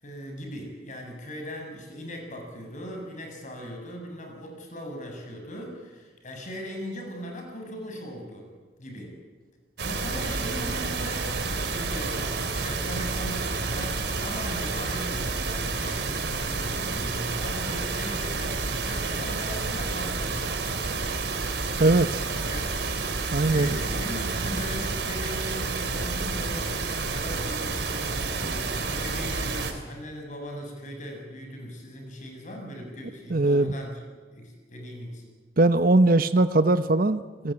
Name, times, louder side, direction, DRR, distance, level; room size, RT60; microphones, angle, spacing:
voice 1, 0.0-8.5 8.8-9.2 9.8-20.7 22.5-22.7 23.4-26.7 27.1-34.0 34.3-35.2, equal, 45° left, 3 dB, 7.7 m, -39 dB
sound 1, 9.8-29.7, right 3 dB, 70° right, 3.3 m, -30 dB
voice 2, 21.8-22.2 23.3-23.8 33.3-33.7 35.6-37.5, right 2 dB, 55° right, 11 dB, 0.9 m, -21 dB
28.5 x 20.5 x 8.9 m, 1.4 s
head